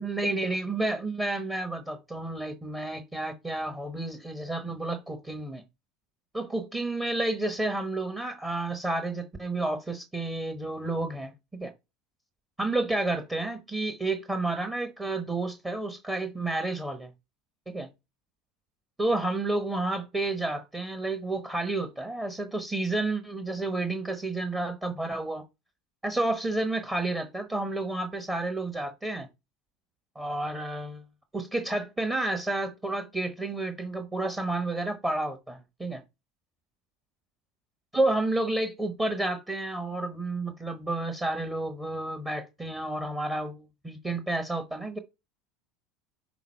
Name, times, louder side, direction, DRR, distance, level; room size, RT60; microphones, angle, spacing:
voice 1, 0.0-5.6 6.3-11.7 12.6-17.1 17.7-17.9 19.0-25.4 26.0-29.3 30.1-31.0 31.3-36.0 37.9-45.0, right 2 dB, 15° right, 1.0 m, -30 dB
6.0 x 3.7 x 4.3 m
figure-of-eight pair, 75°, 0 cm